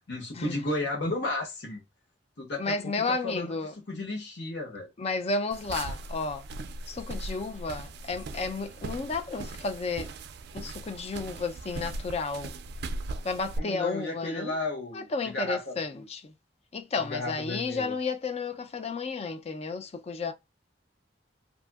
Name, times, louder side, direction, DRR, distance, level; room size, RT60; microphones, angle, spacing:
voice 1, 0.1-1.8 2.4-3.5 3.9-4.9 13.6-15.1 15.3-16.0 17.1-17.9, left 2 dB, 70° left, 1.1 m, -33 dB
voice 2, 2.6-3.7 5.0-6.5 6.9-10.1 10.5-12.5 13.2-14.5 14.9-16.3 16.7-20.3, left 4 dB, 35° left, 0.4 m, -32 dB
sound 1, 5.5-13.6, right 2 dB, 65° right, 0.3 m, -39 dB
2.6 x 2.6 x 2.3 m
head